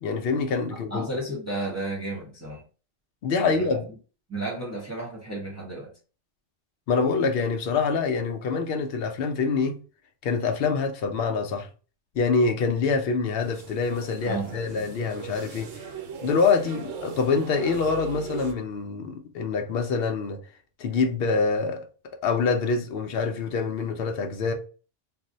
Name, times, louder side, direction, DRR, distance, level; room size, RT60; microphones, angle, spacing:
voice 1, 0.0-1.1 3.2-3.9 6.9-9.8 10.2-11.7 12.1-15.7 16.2-20.4 20.8-21.9 22.2-24.5, left 4 dB, 60° left, 0.7 m, -25 dB
voice 2, 0.7-2.6 3.4-3.7 4.3-5.9 14.3-14.9, right 2 dB, 15° right, 0.8 m, -33 dB
sound 1, 13.4-18.5, right 6 dB, 90° right, 1.0 m, -39 dB
2.6 x 2.1 x 3.7 m
omnidirectional pair, 1.3 m